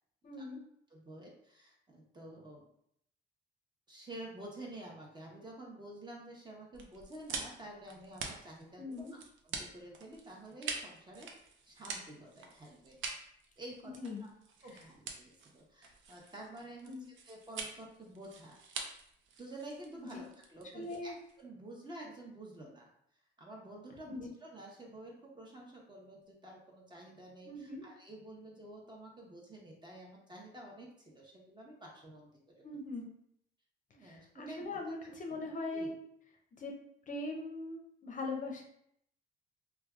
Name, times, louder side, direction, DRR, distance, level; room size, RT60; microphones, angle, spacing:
voice 1, 0.2-0.6 8.8-9.1 13.8-14.3 16.9-17.1 20.7-21.1 24.1-24.3 27.4-27.9 32.6-33.1 34.0-36.0 36.6-36.7 37.1-38.6, left 2 dB, 40° left, 1 dB, 0.6 m, -41 dB
voice 2, 0.9-2.7 3.9-9.0 9.4-13.0 13.6-13.9 14.2-14.3 14.6-16.9 17.2-18.6 19.4-21.1 21.4-22.9 23.4-32.6 33.9-36.0, right 1 dB, 20° right, -2 dB, 0.7 m, -50 dB
sound 1, 6.7-21.4, right 4 dB, 75° right, 0.5 m, -45 dB
3.1 x 2.3 x 2.3 m, 0.72 s
cardioid pair, 90°, 20 cm